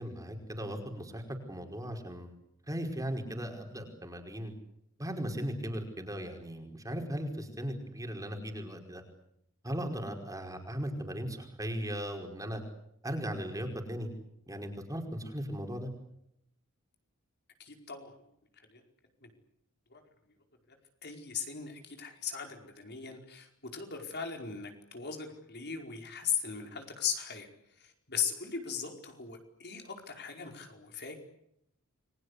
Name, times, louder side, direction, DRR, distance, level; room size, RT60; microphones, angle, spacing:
voice 1, 0.0-2.3 2.7-4.5 5.0-9.0 9.6-12.6 13.0-14.1 14.5-15.9, equal, 15° right, 4 dB, 5.1 m, -37 dB
voice 2, 17.6-18.1 18.7-18.8 19.2-19.3 19.9-20.0 21.0-27.5 27.8-31.2, left 7 dB, 50° left, 4 dB, 5.0 m, -38 dB
30.0 x 22.5 x 8.3 m, 0.76 s
head